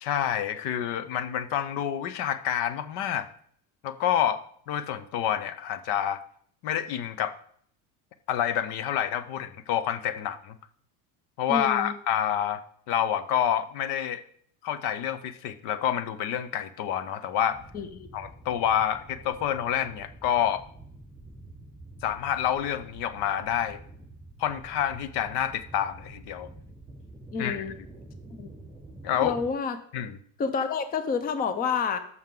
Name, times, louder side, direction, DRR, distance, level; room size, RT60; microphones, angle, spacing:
voice 1, 0.0-3.3 3.8-4.4 4.7-6.2 6.6-7.3 8.3-10.5 11.4-12.6 12.9-14.2 14.6-17.6 18.1-20.6 22.0-23.8 24.4-26.5 27.4-27.7 29.0-29.4 29.9-30.2, left 10 dB, 70° left, 12 dB, 0.9 m, -28 dB
voice 2, 11.5-11.9 17.7-17.9 27.3-27.7 28.3-28.5 29.2-29.8 30.4-32.0, left 5 dB, 20° left, 10 dB, 0.6 m, -28 dB
sound 1, 17.5-29.5, right 2 dB, 5° right, 3.7 m, -47 dB
13.0 x 6.2 x 3.8 m, 0.62 s
cardioid pair, 160°, 40 cm